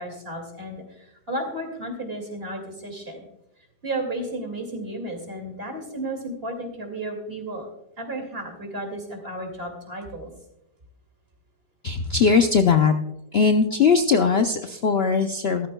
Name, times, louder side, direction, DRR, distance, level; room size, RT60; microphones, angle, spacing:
voice 1, 0.0-3.2 3.8-7.7 8.0-10.3, right 1 dB, 30° right, 3 dB, 2.6 m, -33 dB
voice 2, 11.8-12.9 13.3-15.7, left 5 dB, 90° left, 6 dB, 0.5 m, -20 dB
16.0 x 13.5 x 2.3 m, 0.83 s
omnidirectional pair, 1.9 m